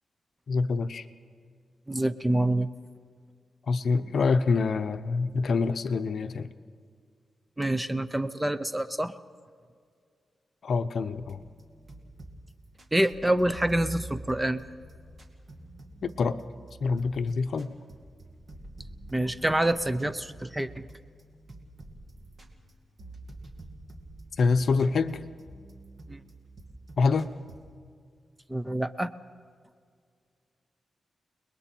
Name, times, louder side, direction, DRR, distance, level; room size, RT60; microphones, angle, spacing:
voice 1, 0.5-1.1 3.7-6.5 10.6-11.4 16.0-16.4 16.8-17.7 24.4-25.2 27.0-27.3, left 4 dB, 60° left, 10 dB, 0.8 m, -26 dB
voice 2, 1.9-2.7 7.6-9.1 12.9-14.6 19.1-20.9 26.1-26.2 28.5-29.1, right 1 dB, 10° right, 12 dB, 0.6 m, -27 dB
sound 1, 11.1-27.6, right 1 dB, 55° right, 2.4 m, -47 dB
29.5 x 21.0 x 4.5 m, 2.1 s
wide cardioid pair, 120°, 0 cm